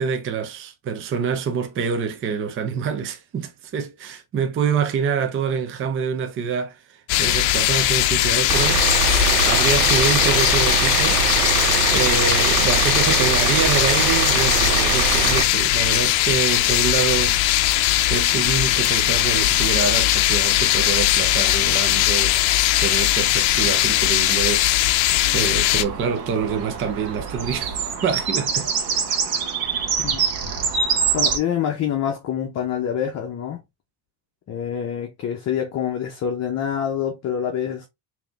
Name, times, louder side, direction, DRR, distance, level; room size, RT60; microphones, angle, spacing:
voice 1, 0.0-9.0 9.3-11.5 11.9-17.4 18.1-29.1, right 6 dB, 25° right, 0.6 m, -26 dB
sound 1, 7.1-25.8, left 14 dB, 70° left, 0.6 m, -19 dB
sound 2, 8.5-15.4, right 13 dB, 75° right, 0.6 m, -23 dB
sound 3, 25.7-31.4, right 6 dB, 45° right, 1.1 m, -25 dB
voice 2, 31.1-33.6 34.5-37.9, left 9 dB, 35° left, 0.8 m, -26 dB
3.6 x 2.9 x 3.2 m
cardioid pair, 130°, 50 cm